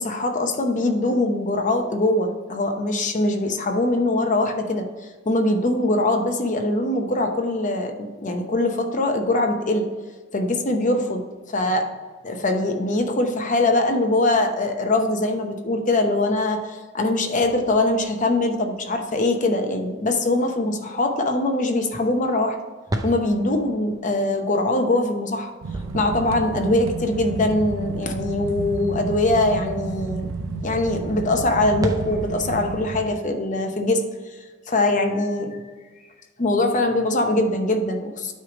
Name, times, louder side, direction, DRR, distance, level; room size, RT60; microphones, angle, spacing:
voice 1, 0.0-4.9 5.3-9.9 10.3-11.2 11.5-11.9 12.2-22.6 23.0-25.5 25.9-30.3 30.6-34.0 34.7-35.6 36.4-38.3, left 2 dB, 40° left, 4 dB, 0.8 m, -22 dB
sound 1, 17.4-19.9 20.3-20.4 22.9-27.2 27.7-27.8 31.5-33.5, right 1 dB, 15° right, 0.5 m, -36 dB
sound 2, 25.6-33.1, right 3 dB, 70° right, 0.5 m, -32 dB
9.1 x 3.3 x 5.0 m, 1.4 s
head